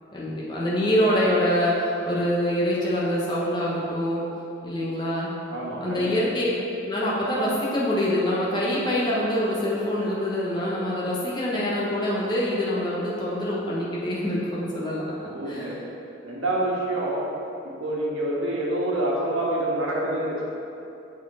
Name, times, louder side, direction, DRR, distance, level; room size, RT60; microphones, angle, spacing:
voice 1, 0.1-4.2 4.6-5.3 5.8-6.5 6.9-15.7, left 1 dB, 20° left, -6 dB, 1.0 m, -25 dB
voice 2, 5.5-6.2 15.2-15.8 16.2-17.3 17.8-20.4, right 1 dB, 85° right, -5 dB, 1.4 m, -27 dB
7.1 x 4.3 x 4.2 m, 2.8 s
head